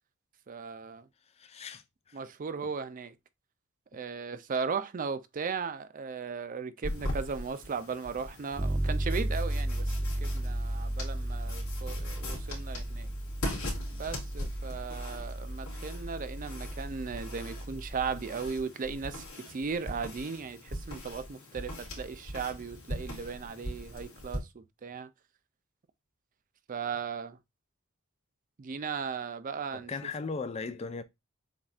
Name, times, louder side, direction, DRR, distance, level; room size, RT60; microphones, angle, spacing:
voice 1, 0.5-1.1 2.1-3.1 3.9-13.1 13.9-25.1 26.7-27.4 28.6-29.9, right 5 dB, 40° right, 0.4 m, -37 dB
voice 2, 1.4-2.2 2.6-2.7 29.7-31.0, left 4 dB, 30° left, 0.4 m, -38 dB
sound 1, 6.8-24.4, left 1 dB, 80° left, 2.5 m, -41 dB
Bass guitar, 8.6-18.3, right 1 dB, 10° right, 0.7 m, -34 dB
7.2 x 2.6 x 2.3 m
head